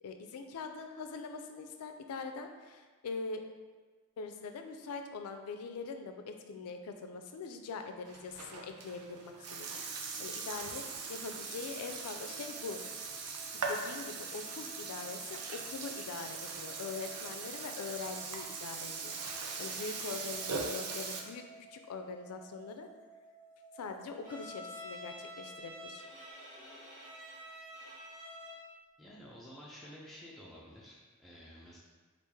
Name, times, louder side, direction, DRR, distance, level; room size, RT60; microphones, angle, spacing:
voice 1, 0.0-3.4 4.2-12.8 13.5-22.9 23.7-26.0, left 4 dB, 75° left, 6 dB, 0.3 m, -43 dB
Burping eructation, 8.1-21.2, right 4 dB, 80° right, 0.4 m, -40 dB
sound 1, 11.7-26.3, right 4 dB, 40° right, 0.9 m, -58 dB
Bowed string instrument, 24.2-28.8, left 1 dB, 20° right, 1.3 m, -48 dB
voice 2, 29.0-31.8, equal, ahead, -7 dB, 0.3 m, -51 dB
3.1 x 2.5 x 3.4 m, 1.4 s
head